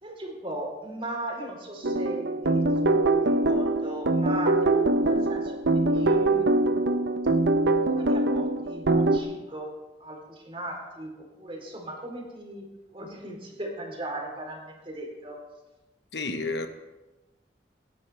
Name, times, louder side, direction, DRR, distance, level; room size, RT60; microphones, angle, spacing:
voice 1, 0.0-6.8 7.9-9.7 10.0-15.4, right 1 dB, 30° right, 0 dB, 3.8 m, -38 dB
sound 1, 1.8-9.2, right 2 dB, 80° right, 0.9 m, -23 dB
voice 2, 16.1-16.7, left 3 dB, 70° left, 6 dB, 1.2 m, -30 dB
19.0 x 13.5 x 3.5 m, 1.1 s
head